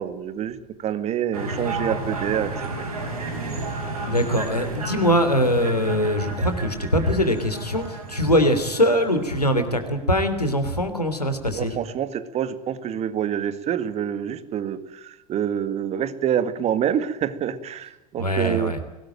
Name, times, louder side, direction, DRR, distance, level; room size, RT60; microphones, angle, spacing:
voice 1, 0.0-2.9 11.5-18.8, right 9 dB, 35° right, 13 dB, 1.9 m, -27 dB
sound 1, 1.3-9.6, right 3 dB, 70° right, 5.4 m, -32 dB
voice 2, 4.0-11.7 18.2-18.8, equal, 85° left, 9 dB, 3.1 m, -22 dB
23.5 x 19.0 x 9.0 m, 0.97 s
figure-of-eight pair, 80°, 20 cm